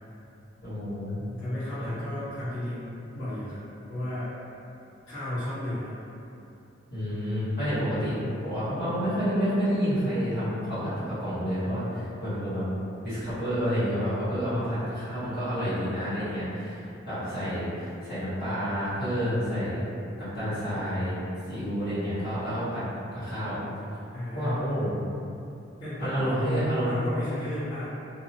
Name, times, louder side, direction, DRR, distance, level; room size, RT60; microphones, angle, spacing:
voice 1, 0.6-1.2 1.8-1.9 6.9-8.2 8.4-12.6 13.0-19.8 20.2-21.2 21.5-22.8 23.1-23.6 24.3-24.9 26.0-27.0, equal, 55° left, -16 dB, 1.3 m, -29 dB
voice 2, 1.1-3.6 3.9-4.4 5.1-6.0 14.3-14.8 24.1-24.6 25.8-27.8, left 1 dB, 85° left, -16 dB, 1.3 m, -34 dB
2.6 x 2.0 x 2.6 m, 2.7 s
head